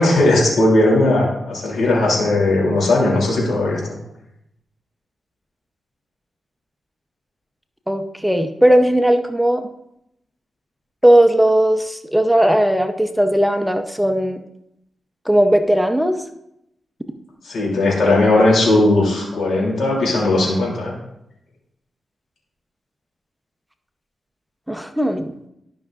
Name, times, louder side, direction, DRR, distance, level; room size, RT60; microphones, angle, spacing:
voice 1, 0.0-3.8 17.4-20.9, left 2 dB, 75° left, -3 dB, 2.8 m, -17 dB
voice 2, 7.9-9.6 11.0-14.4 15.3-16.2 24.7-25.3, right 1 dB, ahead, 7 dB, 0.7 m, -17 dB
12.0 x 5.7 x 2.5 m, 0.81 s
cardioid pair, 60°, 0 cm